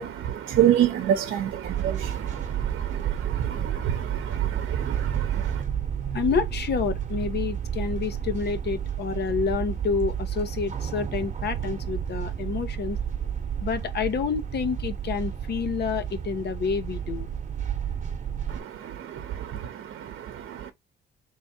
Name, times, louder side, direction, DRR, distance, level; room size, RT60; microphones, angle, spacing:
voice 1, 0.0-5.6 18.5-20.7, right 10 dB, 75° right, 0.8 m, -28 dB
sound 1, 1.6-18.6, right 9 dB, 40° right, 1.0 m, -31 dB
voice 2, 6.1-13.0 13.6-17.3, left 5 dB, 55° left, 0.9 m, -28 dB
3.4 x 3.2 x 4.2 m
cardioid pair, 90°, 20 cm